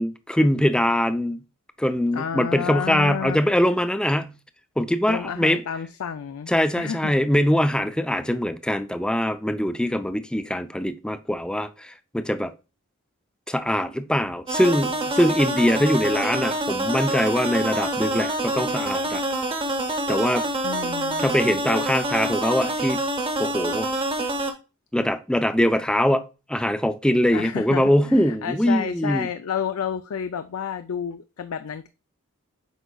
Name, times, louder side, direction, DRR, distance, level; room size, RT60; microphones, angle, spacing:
voice 1, 0.0-1.4 1.8-4.3 4.8-5.6 6.5-12.5 13.5-19.2 20.1-20.5 21.2-23.0 23.4-23.9 24.9-26.2 26.5-29.3, equal, 5° left, 0.4 m, -22 dB
voice 2, 2.1-3.4 5.1-6.5 6.8-7.1 20.6-21.4 27.3-31.9, left 7 dB, 70° left, 0.4 m, -30 dB
sound 1, 14.5-24.5, right 1 dB, 25° right, 1.0 m, -26 dB
8.0 x 5.1 x 2.3 m
head